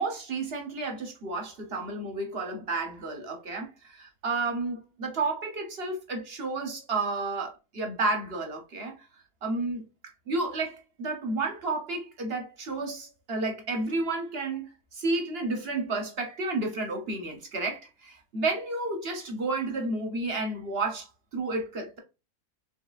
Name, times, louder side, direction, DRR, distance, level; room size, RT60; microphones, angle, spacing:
voice 1, 0.0-8.9 9.4-9.8 10.3-21.1 21.3-22.0, right 3 dB, 50° right, 0.9 m, -31 dB
4.6 x 3.3 x 2.4 m
omnidirectional pair, 1.6 m